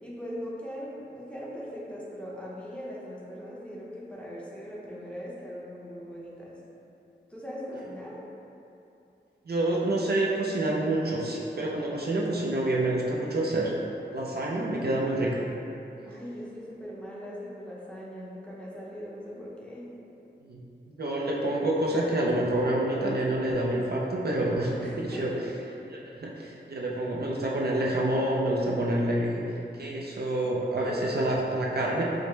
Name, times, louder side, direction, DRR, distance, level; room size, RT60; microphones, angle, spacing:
voice 1, 0.0-6.6 7.3-8.2 16.0-19.9 24.8-25.5 30.8-31.1, equal, 5° left, -7 dB, 0.7 m, -40 dB
voice 2, 9.5-13.7 14.1-15.5 20.5-20.6 20.9-25.3 25.9-29.4 29.8-32.0, right 1 dB, 55° right, -3 dB, 0.5 m, -27 dB
4.8 x 2.0 x 3.2 m, 2.8 s
wide cardioid pair, 80°, 19 cm